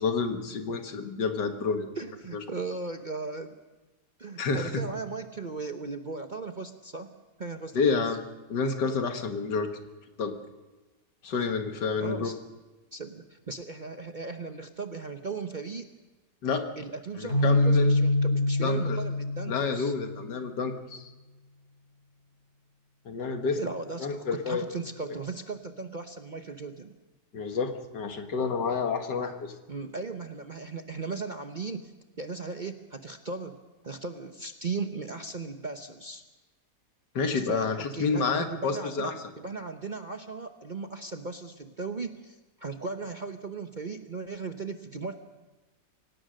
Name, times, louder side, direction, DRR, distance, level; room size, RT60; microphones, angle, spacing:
voice 1, 0.0-1.9 2.3-2.4 4.4-4.7 7.7-8.2 8.5-9.7 10.2-10.4 11.2-12.3 16.4-16.7 17.2-18.0 18.6-19.0 19.5-21.1 23.1-23.6 24.0-24.6 27.3-29.5 37.2-39.1, left 5 dB, 75° left, 6 dB, 2.2 m, -29 dB
voice 2, 2.0-3.6 4.2-8.0 12.0-12.4 12.9-15.9 16.8-19.9 23.6-27.0 29.7-31.9 32.2-33.6 33.8-36.2 37.3-45.2, right 4 dB, 35° right, 7 dB, 0.8 m, -37 dB
Keyboard (musical), 17.3-20.2, left 2 dB, 35° left, 4.8 m, -25 dB
25.5 x 17.5 x 6.5 m, 1.2 s
omnidirectional pair, 1.9 m